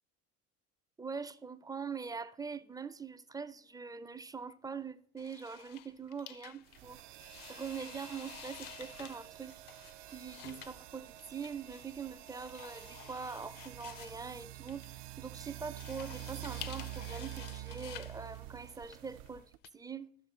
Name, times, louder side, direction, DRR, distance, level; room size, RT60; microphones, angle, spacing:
voice 1, 1.0-9.5 10.1-20.2, right 5 dB, 10° right, 0.4 m, -43 dB
sound 1, 5.2-19.7, left 12 dB, 60° left, 0.6 m, -52 dB
sound 2, 6.7-19.6, right 16 dB, 70° right, 0.5 m, -48 dB
13.0 x 6.1 x 4.3 m
hypercardioid pair, 80°, 38 cm